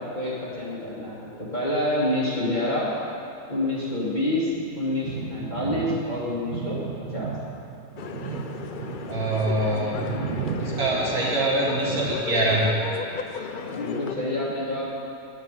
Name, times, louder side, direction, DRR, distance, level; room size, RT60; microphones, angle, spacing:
voice 1, 0.0-2.9 3.5-6.8 7.1-7.3 13.6-14.9, left 1 dB, 30° left, -9 dB, 1.7 m, -27 dB
sound 1, 5.0-12.7, right 7 dB, 65° right, 0.9 m, -35 dB
sound 2, 8.0-14.1, left 5 dB, 50° left, 0.6 m, -34 dB
voice 2, 9.1-10.1 10.6-12.7, right 1 dB, 85° right, -5 dB, 2.8 m, -24 dB
10.0 x 6.7 x 8.8 m, 2.6 s
omnidirectional pair, 1.5 m